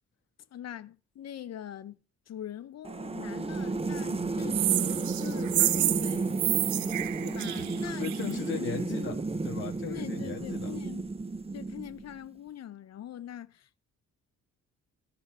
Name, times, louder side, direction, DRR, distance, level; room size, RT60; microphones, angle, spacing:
voice 1, 0.5-2.0 2.3-6.3 7.2-8.8 9.9-11.1 11.5-13.8, left 11 dB, 55° left, 1.0 m, -42 dB
sound 1, 2.8-12.2, right 3 dB, 20° right, 0.9 m, -33 dB
sound 2, 4.5-8.3, right 14 dB, 70° right, 0.6 m, -29 dB
voice 2, 8.0-10.7, left 6 dB, 40° left, 2.4 m, -37 dB
14.0 x 5.7 x 5.6 m
cardioid pair, 90°, 30 cm